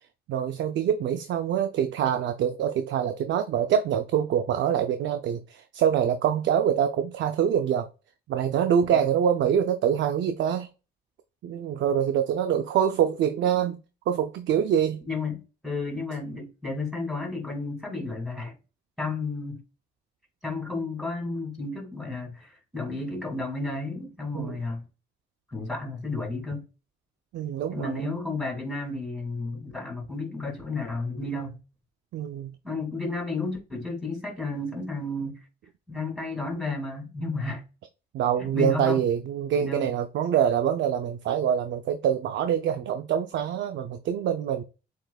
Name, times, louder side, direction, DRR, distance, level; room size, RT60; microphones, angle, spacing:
voice 1, 0.3-7.9 8.3-10.7 11.4-13.8 14.1-15.0 24.3-24.6 27.3-28.1 32.1-32.5 38.1-44.6, right 9 dB, 70° right, 0.6 m, -25 dB
voice 2, 15.1-18.6 19.0-19.6 20.4-24.8 25.5-26.6 27.7-31.6 32.6-35.4 35.9-37.6 38.5-39.0 39.5-39.9, left 3 dB, ahead, 2.5 m, -32 dB
7.6 x 3.0 x 2.4 m
cardioid pair, 90°, 20 cm